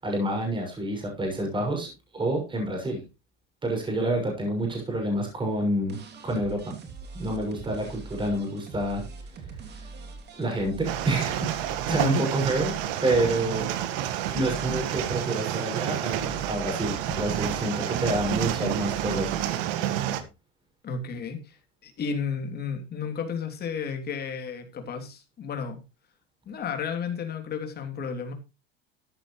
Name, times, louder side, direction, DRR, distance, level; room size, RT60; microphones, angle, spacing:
voice 1, 0.0-3.0 3.6-6.0 6.2-6.7 7.1-9.0 9.4-9.5 9.8-9.9 10.4-11.5 11.9-12.7 13.0-19.3, right 1 dB, 15° right, 1 dB, 6.5 m, -28 dB
sound 1, 5.9-19.7, right 4 dB, 35° right, 3.0 m, -43 dB
sound 2, 10.8-20.2, right 11 dB, 65° right, 1.7 m, -29 dB
voice 2, 11.9-12.2 20.8-25.8 26.4-28.3, left 6 dB, 30° left, 5 dB, 3.1 m, -32 dB
14.0 x 10.5 x 3.2 m, 0.27 s
supercardioid pair, 125°, 30 cm